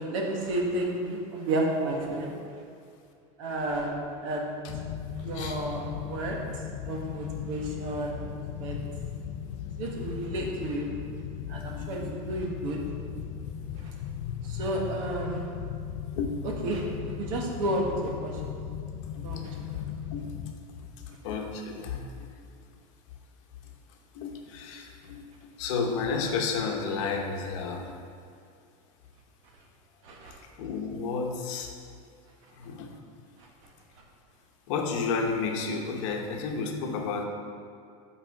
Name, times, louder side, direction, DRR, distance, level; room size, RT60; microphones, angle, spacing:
voice 1, 0.0-2.3 3.4-4.6 5.1-6.4 6.8-8.3 8.6-8.9 9.8-11.0 11.5-12.8 13.8-13.9 14.4-15.5 16.6-16.8 17.2-18.4 19.2-19.5 30.0-30.4, right 1 dB, 65° right, 0 dB, 1.4 m, -31 dB
sound 1, 4.7-20.5, left 9 dB, 45° left, 0.4 m, -37 dB
voice 2, 11.7-12.1 16.1-16.4 19.1-19.4 20.1-20.4 20.7-22.4 23.6-28.0 30.2-31.7 32.5-33.0 34.7-37.2, left 5 dB, 60° left, 2 dB, 1.0 m, -32 dB
5.9 x 4.9 x 6.6 m, 2.4 s
supercardioid pair, 175°, 18 cm